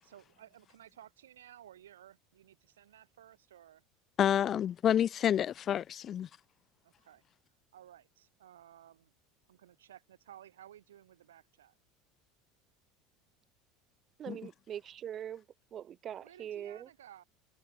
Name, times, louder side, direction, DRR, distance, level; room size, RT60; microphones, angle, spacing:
voice 1, 0.0-3.8 6.8-7.2 7.7-9.1 9.5-11.7 16.2-17.2, right 11 dB, 85° right, 7.2 m, -56 dB
voice 2, 4.2-6.3 14.3-14.4, left 10 dB, 40° left, 0.6 m, -29 dB
voice 3, 14.2-15.4 15.7-16.9, right 10 dB, 40° right, 1.3 m, -42 dB
hypercardioid pair, 80°, 0 cm